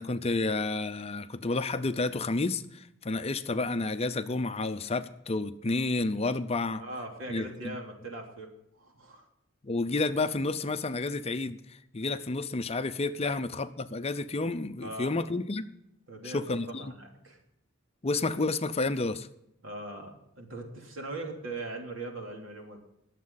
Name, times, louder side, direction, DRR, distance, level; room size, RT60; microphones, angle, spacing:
voice 1, 0.0-6.8 7.3-7.8 9.6-15.6 16.2-16.9 18.0-19.3, left 3 dB, 30° left, 11 dB, 0.6 m, -30 dB
voice 2, 6.7-9.2 13.2-13.3 14.8-15.2 16.1-16.4 16.8-17.4 19.6-22.8, right 2 dB, 80° right, 1 dB, 3.1 m, -40 dB
20.5 x 7.5 x 4.1 m, 0.79 s
head